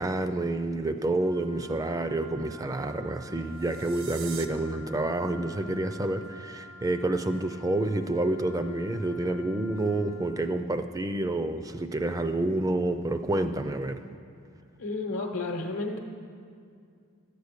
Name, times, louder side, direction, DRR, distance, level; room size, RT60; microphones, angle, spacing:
voice 1, 0.0-14.0, right 2 dB, 15° right, 9 dB, 0.4 m, -28 dB
Wind instrument woodwind instrument, 1.1-10.2, equal, 85° right, 3.7 m, -48 dB
sound 1, 3.5-4.5, right 8 dB, 60° right, 0.7 m, -42 dB
voice 2, 14.8-16.0, left 3 dB, 75° left, -1 dB, 0.8 m, -31 dB
12.5 x 8.3 x 6.6 m, 2.3 s
head